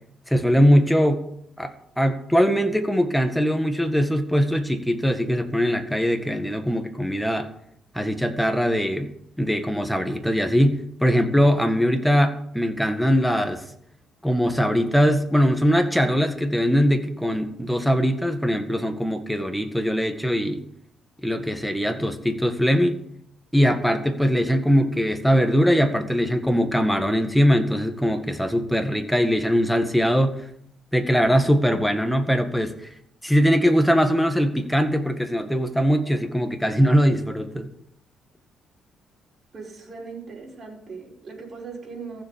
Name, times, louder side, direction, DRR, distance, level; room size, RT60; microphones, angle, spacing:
voice 1, 0.3-1.2 1.6-7.5 7.9-9.1 9.4-13.6 14.2-20.6 21.2-23.0 23.5-30.4 30.9-32.8 33.2-37.7, equal, ahead, 7 dB, 1.9 m, -21 dB
voice 2, 39.5-42.2, right 4 dB, 40° right, -1 dB, 5.2 m, -39 dB
15.0 x 7.4 x 8.4 m, 0.70 s
cardioid pair, 90°, 0 cm